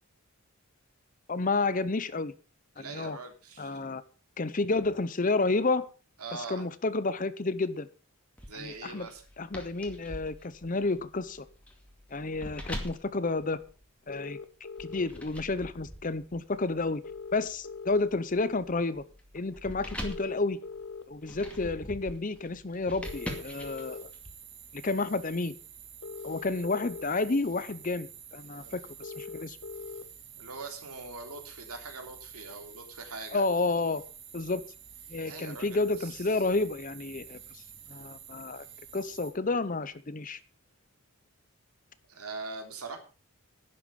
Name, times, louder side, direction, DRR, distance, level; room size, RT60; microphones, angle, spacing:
voice 1, 1.3-2.3 2.8-3.2 3.6-4.0 4.4-5.9 6.5-7.9 8.6-9.1 9.4-11.4 12.1-13.6 14.1-14.4 14.8-17.0 17.3-19.0 19.3-20.6 21.1-24.1 24.7-25.5 26.2-29.6 33.3-34.0 34.3-34.6 35.1-37.6 37.9-38.6 38.9-40.4, left 3 dB, 35° left, 15 dB, 0.7 m, -30 dB
voice 2, 2.7-3.8 6.2-6.6 8.5-9.2 28.6-28.8 30.4-33.4 35.2-36.5 42.1-43.0, right 3 dB, 90° right, 4 dB, 3.3 m, -42 dB
sound 1, 8.4-14.2 14.8-24.3, equal, 5° left, 2.3 m, -44 dB
sound 2, 14.1-15.1 17.0-18.1 20.0-21.0 23.0-24.0 26.0-27.0 29.0-30.0, left 5 dB, 60° left, 1.1 m, -41 dB
sound 3, 23.0-39.3, right 8 dB, 55° right, 3.8 m, -49 dB
11.5 x 11.0 x 5.3 m, 0.35 s
head